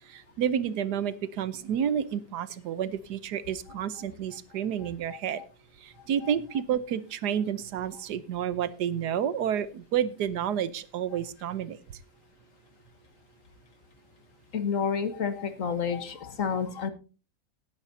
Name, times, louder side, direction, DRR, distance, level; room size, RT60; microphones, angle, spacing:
voice 1, 0.1-5.4 5.8-11.8, right 9 dB, 80° right, 15 dB, 1.4 m, -30 dB
voice 2, 5.1-5.4 6.2-6.3 14.5-16.9, left 6 dB, 55° left, 10 dB, 1.5 m, -30 dB
18.0 x 10.0 x 2.7 m, 0.33 s
omnidirectional pair, 1.7 m